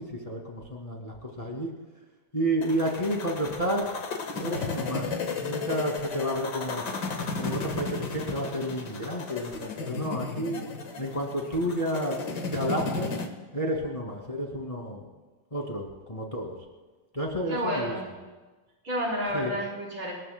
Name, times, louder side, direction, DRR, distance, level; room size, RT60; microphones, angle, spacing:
voice 1, 0.0-1.7 2.3-3.9 4.3-6.8 7.4-10.6 11.0-12.2 12.5-13.1 13.5-15.0 15.5-16.6 17.1-17.9 19.3-19.6, equal, 15° left, -1 dB, 2.3 m, -31 dB
sound 1, 2.6-13.3, left 4 dB, 55° left, 1.9 m, -34 dB
voice 2, 17.5-18.1 18.8-20.1, equal, 90° right, -4 dB, 5.1 m, -30 dB
28.0 x 20.5 x 2.2 m, 1.3 s
omnidirectional pair, 2.3 m